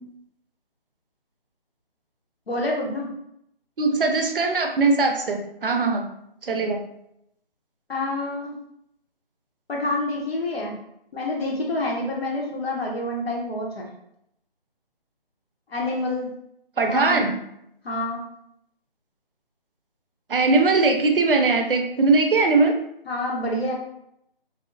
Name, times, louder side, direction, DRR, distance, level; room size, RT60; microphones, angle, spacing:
voice 1, 2.5-3.1 7.9-8.6 9.7-10.8 11.1-13.9 15.7-16.3 16.8-17.3 17.8-18.2 23.1-23.7, left 2 dB, 85° left, -1 dB, 0.9 m, -27 dB
voice 2, 3.8-6.1 6.4-6.8 16.8-17.3 20.3-22.7, right 3 dB, 65° right, 4 dB, 0.5 m, -20 dB
2.6 x 2.0 x 2.6 m, 0.77 s
figure-of-eight pair, 180°, 30 cm